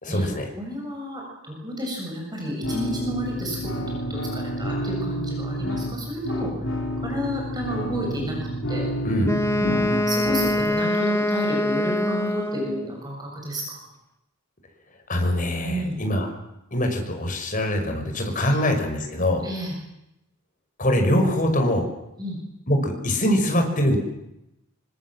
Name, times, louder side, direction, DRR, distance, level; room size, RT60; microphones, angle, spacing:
voice 1, 0.0-0.5 9.0-9.3 15.1-16.3 16.7-19.4 20.8-21.9 22.7-24.0, left 1 dB, 40° left, 4 dB, 6.0 m, -23 dB
voice 2, 0.6-6.7 7.0-8.4 8.7-8.9 9.6-9.8 10.1-13.8 15.6-16.0 18.5-18.6 19.4-19.7 22.2-22.4, equal, 20° right, 0 dB, 7.2 m, -31 dB
sound 1, 2.6-10.6, equal, 60° left, 5.4 m, -29 dB
Wind instrument woodwind instrument, 9.2-12.9, left 1 dB, 15° left, 1.6 m, -24 dB
26.5 x 25.0 x 7.7 m, 0.87 s
head